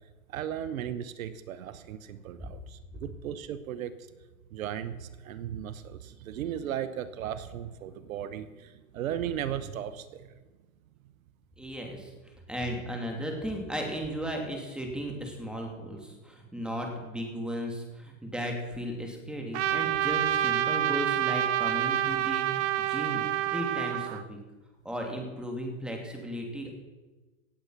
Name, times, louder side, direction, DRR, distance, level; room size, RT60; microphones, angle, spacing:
voice 1, 0.3-4.1 4.5-10.3, right 10 dB, 85° right, 14 dB, 1.0 m, -36 dB
voice 2, 11.6-12.1 12.5-24.4 24.8-26.7, equal, ahead, 1 dB, 3.1 m, -35 dB
Trumpet, 19.5-24.2, right 11 dB, 60° right, 1.0 m, -28 dB
17.5 x 8.0 x 5.9 m, 1.2 s
hypercardioid pair, 120°, 40 cm